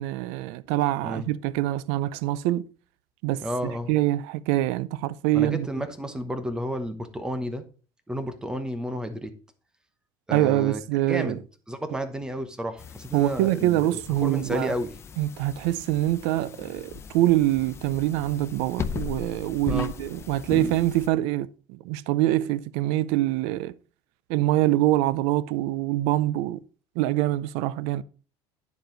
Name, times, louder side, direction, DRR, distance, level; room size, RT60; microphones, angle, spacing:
voice 1, 0.0-2.6 3.2-5.7 10.3-11.4 13.1-14.7 15.2-23.7 24.3-26.6 27.0-28.0, right 15 dB, 80° right, 0.5 m, -25 dB
voice 2, 3.4-4.0 5.3-7.6 8.1-9.3 10.3-10.8 11.1-11.4 11.7-14.9 19.7-19.9, equal, 5° right, 1.0 m, -31 dB
sound 1, 12.8-21.1, left 7 dB, 25° left, 0.5 m, -38 dB
9.5 x 6.9 x 3.9 m
cardioid pair, 155°, 11 cm